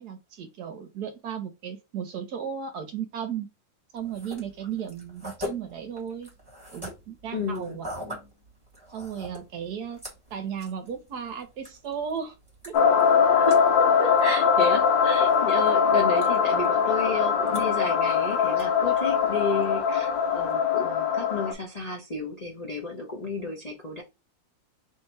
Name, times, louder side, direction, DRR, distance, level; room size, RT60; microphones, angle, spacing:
voice 1, 0.0-3.5 3.9-6.3 6.7-7.9 8.9-10.0 10.3-12.3 12.6-12.8, right 8 dB, 65° right, 1.1 m, -35 dB
sound 1, 3.9-20.5, left 1 dB, 15° right, 1.3 m, -45 dB
voice 2, 7.3-7.8 13.2-24.0, left 3 dB, 45° left, 0.5 m, -32 dB
sound 2, 12.7-21.5, left 7 dB, 80° left, 1.3 m, -22 dB
3.2 x 2.8 x 4.4 m
omnidirectional pair, 2.1 m